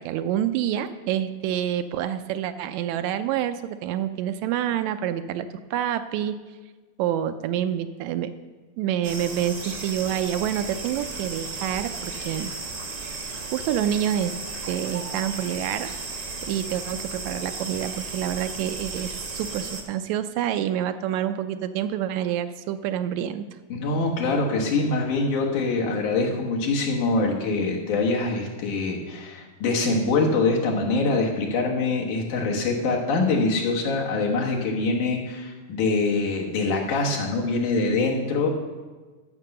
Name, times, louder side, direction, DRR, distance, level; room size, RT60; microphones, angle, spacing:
voice 1, 0.0-6.4 7.0-8.3 8.8-12.5 13.5-14.3 14.7-15.9 16.4-23.5, right 10 dB, 80° right, 10 dB, 1.8 m, -27 dB
sound 1, 9.0-19.8, right 3 dB, 50° right, 0.9 m, -34 dB
voice 2, 23.7-38.5, left 3 dB, 90° left, -1 dB, 3.1 m, -24 dB
14.5 x 5.9 x 6.7 m, 1.3 s
omnidirectional pair, 3.4 m